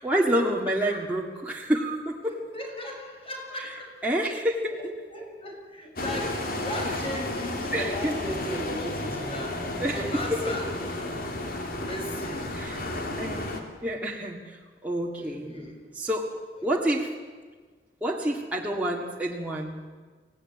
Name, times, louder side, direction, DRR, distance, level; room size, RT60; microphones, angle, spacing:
voice 1, 0.0-2.4 3.6-3.7 4.0-4.8 6.9-7.0 7.7-8.2 9.8-10.5 12.5-12.8 13.2-15.6 15.9-16.3 16.6-17.1 18.0-19.9, right 1 dB, 10° right, -3 dB, 1.8 m, -28 dB
voice 2, 2.5-3.9 4.2-4.4 4.7-9.5 9.9-10.7 11.8-12.5 15.1-15.8 18.3-18.5, left 1 dB, 35° left, 1 dB, 6.5 m, -36 dB
sound 1, 6.0-13.6, left 1 dB, 55° left, 3.1 m, -32 dB
24.0 x 17.5 x 9.7 m, 1.5 s
head